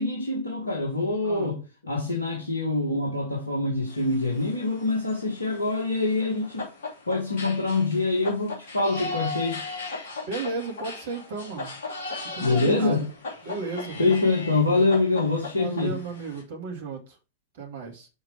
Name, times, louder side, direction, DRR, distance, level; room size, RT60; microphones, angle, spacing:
voice 1, 0.0-6.7 7.1-9.6 12.4-13.1 14.0-16.0, left 3 dB, 80° left, 1.5 m, -25 dB
voice 2, 1.2-1.5 10.3-11.7 12.3-13.1 13.4-14.0 15.6-17.2 17.6-18.1, right 4 dB, 55° right, 2.1 m, -34 dB
sound 1, 3.9-16.4, left 3 dB, 60° left, 3.1 m, -38 dB
6.4 x 4.9 x 4.6 m
figure-of-eight pair, 90°, 0 cm